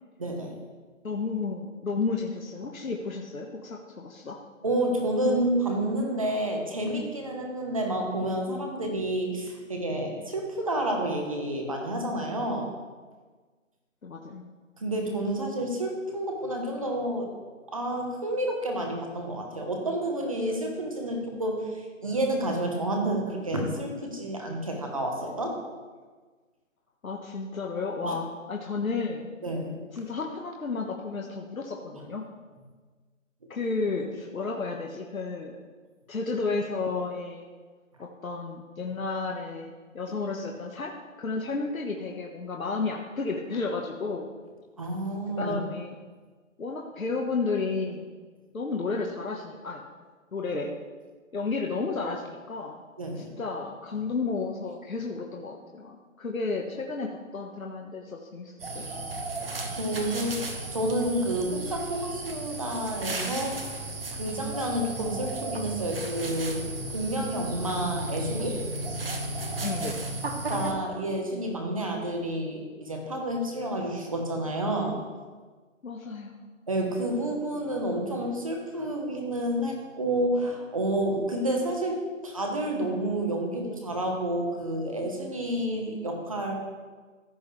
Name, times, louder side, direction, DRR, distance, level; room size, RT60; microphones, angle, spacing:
voice 1, 0.2-0.5 4.6-12.7 14.8-17.3 17.7-25.6 28.0-28.2 29.4-29.7 32.0-32.1 44.8-45.6 53.0-53.3 59.6-63.6 64.1-68.6 70.5-75.0 76.7-86.5, right 1 dB, 25° right, 2 dB, 1.2 m, -29 dB
voice 2, 1.0-4.4 14.0-14.4 27.0-29.3 29.9-32.2 33.5-35.6 36.1-37.5 38.0-44.3 45.4-46.0 46.6-48.0 48.5-49.8 50.3-50.7 51.3-52.8 53.2-59.2 69.6-70.0 75.8-76.4, left 4 dB, 85° left, 0 dB, 1.4 m, -32 dB
sound 1, 58.6-70.7, right 2 dB, 45° right, 1.2 m, -34 dB
15.0 x 7.4 x 3.4 m, 1.4 s
hypercardioid pair, 175°, 40 cm